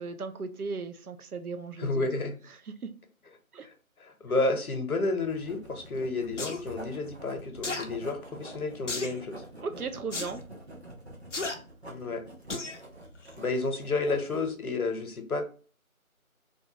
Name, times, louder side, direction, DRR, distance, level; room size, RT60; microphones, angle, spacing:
voice 1, 0.0-2.1 2.7-2.9 3.5-3.7 9.6-10.4, right 4 dB, 85° right, 0.6 m, -36 dB
voice 2, 1.8-2.3 3.6-3.7 4.0-9.4 11.9-12.3 13.4-15.4, left 3 dB, 80° left, 0.8 m, -31 dB
Writing, 5.2-14.5, right 1 dB, 45° right, 0.8 m, -47 dB
sound 1, 6.4-6.6 7.6-7.9 8.9-9.2 10.1-10.3 11.3-11.6 12.5-12.8 13.2-13.3, left 3 dB, 55° left, 0.5 m, -33 dB
2.7 x 2.2 x 2.7 m
figure-of-eight pair, 165°, 43 cm